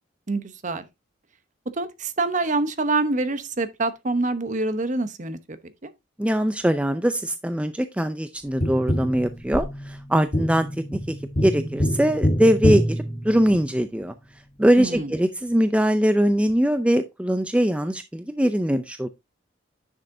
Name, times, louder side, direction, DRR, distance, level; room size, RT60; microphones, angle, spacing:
voice 1, 0.3-0.9 1.7-5.6 5.8-5.9 14.8-15.1, right 3 dB, 40° right, 0.9 m, -26 dB
voice 2, 6.2-11.1 11.4-14.1 14.6-19.1, equal, 5° right, 0.5 m, -22 dB
Tap, 8.6-13.9 16.5-16.6, equal, 35° left, 1.4 m, -26 dB
10.0 x 6.4 x 2.7 m
head